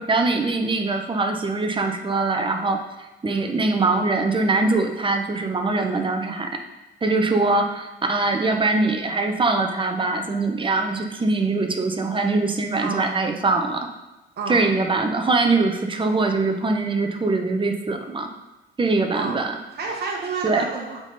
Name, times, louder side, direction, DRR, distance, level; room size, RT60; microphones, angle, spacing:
voice 1, 0.0-2.8 3.2-6.5 7.0-13.9 14.5-18.3 18.8-19.5 20.4-20.7, right 3 dB, 25° right, 4 dB, 0.9 m, -22 dB
voice 2, 5.8-6.1 12.8-13.0 14.4-14.6 19.1-19.4 19.7-21.0, right 4 dB, 55° right, -1 dB, 1.2 m, -30 dB
8.0 x 3.9 x 4.0 m, 1.0 s
cardioid pair, 90°, 20 cm